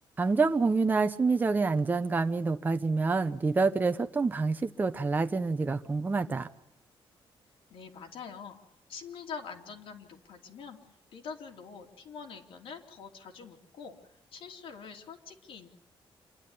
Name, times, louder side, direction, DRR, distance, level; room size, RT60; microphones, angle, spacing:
voice 1, 0.2-6.5, right 4 dB, 20° right, 7 dB, 0.8 m, -27 dB
voice 2, 7.7-8.6 8.9-10.8 11.1-14.0 14.3-15.7, left 6 dB, 80° left, 2 dB, 3.1 m, -44 dB
27.0 x 11.5 x 10.0 m, 0.86 s
wide cardioid pair, 160°, 9 cm